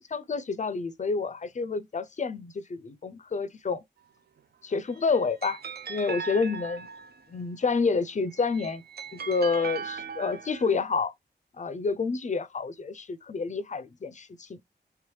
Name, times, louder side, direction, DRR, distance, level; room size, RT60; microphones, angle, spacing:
voice 1, 0.1-3.8 4.6-5.6 5.9-6.9 7.3-8.8 9.1-11.1 11.6-14.6, left 4 dB, 40° left, 0.5 m, -29 dB
sound 1, 4.7-7.4 8.3-10.8, right 5 dB, 65° right, 0.5 m, -39 dB
3.4 x 3.1 x 3.1 m
wide cardioid pair, 80°, 18 cm